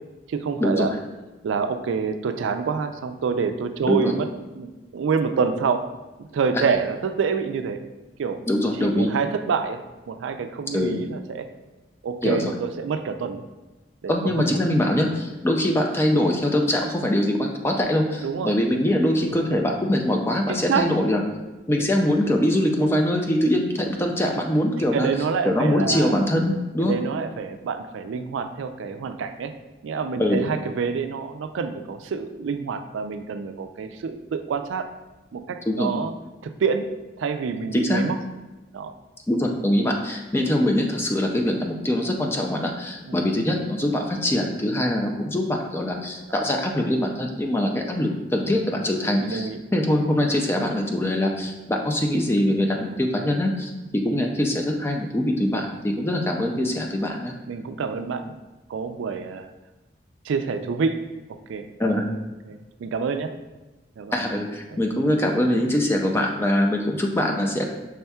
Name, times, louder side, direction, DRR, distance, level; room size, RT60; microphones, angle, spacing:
voice 1, 0.3-0.9 1.4-4.3 4.5-4.7 4.9-5.9 6.2-7.8 8.2-8.4 8.8-9.8 10.1-11.5 12.0-13.4 14.0-14.5 18.2-18.5 20.5-20.9 21.8-21.9 24.8-26.2 26.8-29.5 29.8-34.9 35.3-36.1 36.4-36.9 37.2-38.2 38.7-38.9 43.1-43.3 48.7-48.9 49.2-49.6 53.2-53.3 56.6-56.8 57.5-58.3 58.7-59.5 60.2-61.0 61.3-61.7 62.5-63.3 64.0-64.2, right 5 dB, 90° right, 8 dB, 0.3 m, -27 dB
voice 2, 8.5-9.1 10.7-10.9 12.2-12.5 14.1-21.2 21.7-25.1 25.4-26.9 30.2-30.4 35.7-35.9 37.7-38.0 39.3-57.3 61.8-62.1 64.1-67.6, left 1 dB, 15° left, 2 dB, 0.3 m, -23 dB
5.5 x 3.5 x 2.3 m, 1.1 s
head